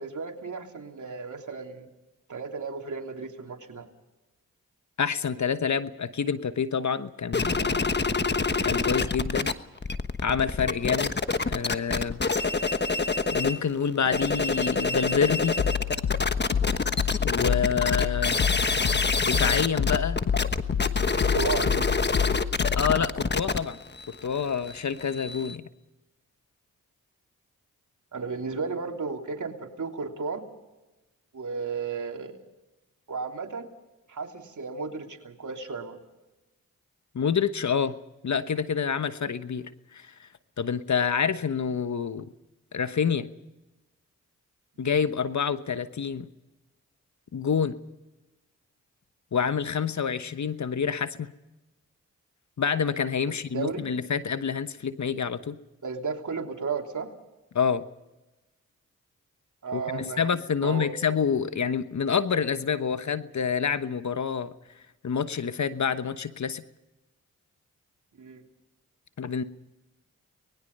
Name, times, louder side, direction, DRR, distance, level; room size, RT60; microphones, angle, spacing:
voice 1, 0.0-1.9 2.3-3.8 21.1-21.9 28.1-30.4 31.3-32.4 33.1-33.7 34.1-36.0 44.8-44.9 53.3-53.8 55.8-57.1 59.6-60.2 60.6-60.9 68.2-68.4, right 4 dB, 60° right, 3 dB, 3.2 m, -34 dB
voice 2, 5.0-7.9 8.6-9.5 10.2-11.2 11.5-12.2 13.3-15.6 17.2-18.4 19.2-20.2 22.8-23.8 24.1-25.7 37.1-38.0 38.2-40.3 40.6-42.3 42.7-43.3 44.8-46.3 47.3-47.8 49.3-51.3 52.6-55.6 57.5-57.9 59.7-64.5 65.0-66.6 69.2-69.4, left 6 dB, 55° left, 12 dB, 1.2 m, -27 dB
sound 1, 7.3-9.5 9.8-13.6 14.0-25.6, left 4 dB, 30° left, 1.2 m, -27 dB
sound 2, 15.6-23.1, left 8 dB, 75° left, 1.3 m, -29 dB
25.0 x 20.5 x 5.5 m, 1.0 s
cardioid pair, 45°, 33 cm